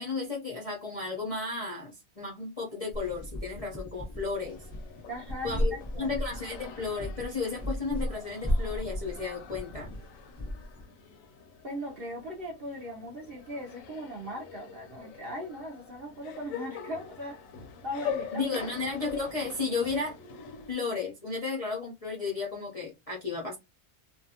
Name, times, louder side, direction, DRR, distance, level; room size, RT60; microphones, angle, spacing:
voice 1, 0.0-4.6 5.4-9.9 18.3-20.2 20.7-23.6, left 4 dB, 40° left, 0.5 m, -33 dB
sound 1, 2.9-10.8, equal, 10° right, 0.8 m, -35 dB
sound 2, 4.4-20.7, left 7 dB, 70° left, 0.9 m, -44 dB
voice 2, 5.1-6.1 11.6-17.4 17.8-18.5, equal, 60° right, 0.6 m, -39 dB
2.6 x 2.3 x 2.7 m
omnidirectional pair, 1.6 m